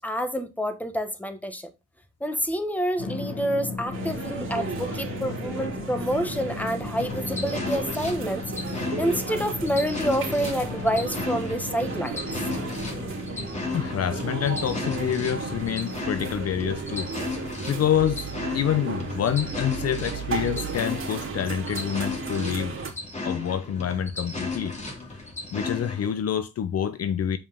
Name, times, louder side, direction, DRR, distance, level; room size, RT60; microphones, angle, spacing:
voice 1, 0.0-1.7 2.2-8.4 8.7-12.2, equal, 5° left, 1.4 m, -28 dB
Drum, 3.0-16.0, left 3 dB, 75° left, 5.0 m, -36 dB
sound 1, 3.9-22.9, right 5 dB, 45° right, 2.7 m, -35 dB
sound 2, 7.0-26.1, left 3 dB, 20° left, 2.6 m, -35 dB
voice 2, 13.7-17.1 17.7-22.7 23.2-24.7 25.5-27.4, left 9 dB, 55° left, 0.7 m, -27 dB
7.4 x 5.3 x 3.6 m
cardioid pair, 90°, 30 cm